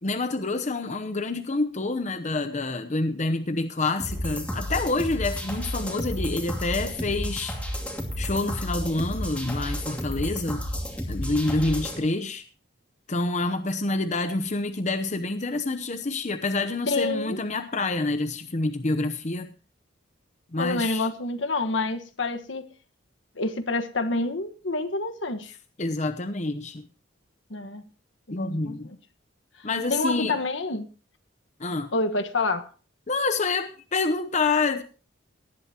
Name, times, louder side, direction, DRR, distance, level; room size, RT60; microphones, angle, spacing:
voice 1, 0.0-7.6 8.2-10.6 11.1-12.4 13.1-19.5 20.5-21.1 25.8-26.9 28.3-28.9 29.6-30.4 31.6-31.9 33.1-34.8, left 3 dB, 40° left, 9 dB, 0.8 m, -27 dB
sound 1, 4.0-12.0, equal, 5° left, 2.6 m, -32 dB
voice 2, 16.9-17.4 20.6-22.7 23.3-25.6 27.5-27.8 28.3-28.8 29.6-30.9 31.9-32.7, left 2 dB, 75° left, 8 dB, 1.5 m, -28 dB
18.5 x 12.0 x 2.9 m, 0.36 s
head